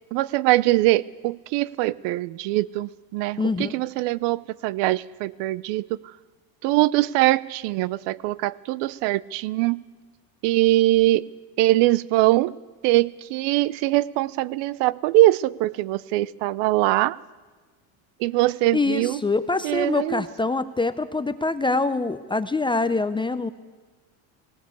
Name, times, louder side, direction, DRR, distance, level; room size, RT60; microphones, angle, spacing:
voice 1, 0.1-6.0 6.6-9.8 10.4-11.2 11.6-12.5 12.8-17.2 18.2-19.2 19.6-20.2, right 17 dB, 70° right, 21 dB, 0.8 m, -22 dB
voice 2, 3.4-3.7 18.7-23.5, left 3 dB, 10° left, 11 dB, 0.7 m, -24 dB
19.0 x 18.0 x 8.3 m, 1.4 s
cardioid pair, 120°, 43 cm